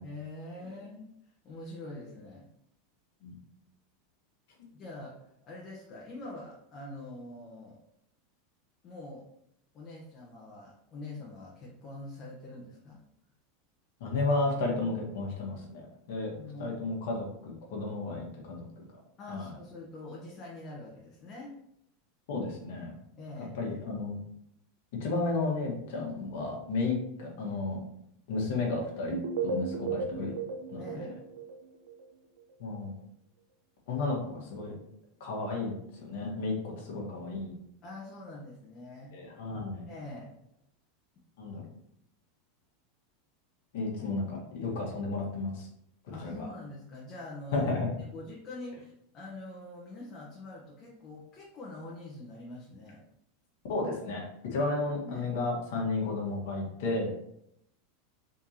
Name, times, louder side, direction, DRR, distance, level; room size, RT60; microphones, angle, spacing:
voice 1, 0.0-2.5 4.7-5.2 5.5-7.8 8.8-9.2 9.7-13.0 16.3-16.7 19.2-21.5 23.2-23.6 30.8-31.2 37.8-39.2 39.9-40.3 46.1-47.7 48.1-53.0 55.0-55.3, left 2 dB, 35° left, -4 dB, 0.9 m, -44 dB
voice 2, 14.0-15.8 16.1-16.3 16.6-18.7 19.3-19.5 22.3-22.9 23.4-24.2 25.0-27.8 28.3-29.2 29.4-30.3 30.7-31.1 32.6-33.0 33.9-34.7 35.2-37.5 39.1-39.8 41.4-41.6 43.7-45.7 46.2-46.5 47.5-47.9 53.7-57.1, left 3 dB, 70° left, -1 dB, 1.3 m, -33 dB
sound 1, 29.1-32.1, right 5 dB, 80° right, 0.5 m, -35 dB
3.8 x 3.5 x 2.8 m, 0.76 s
supercardioid pair, 120°, 0 cm